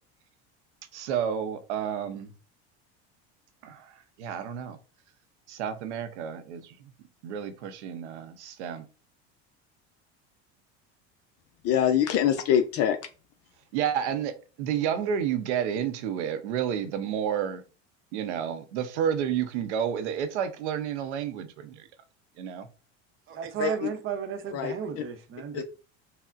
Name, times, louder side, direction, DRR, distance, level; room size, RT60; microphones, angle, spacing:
voice 1, 0.9-2.3 3.6-4.8 5.5-6.9 7.2-8.9 13.7-17.6 18.1-21.9 22.4-22.7, right 8 dB, 85° right, 0.7 m, -30 dB
voice 2, 11.6-13.0 23.6-23.7 24.5-24.7 25.5-25.6, left 9 dB, 45° left, 0.5 m, -23 dB
voice 3, 23.3-25.6, right 7 dB, 40° right, 0.6 m, -33 dB
5.6 x 2.1 x 2.4 m
supercardioid pair, 95°, 33 cm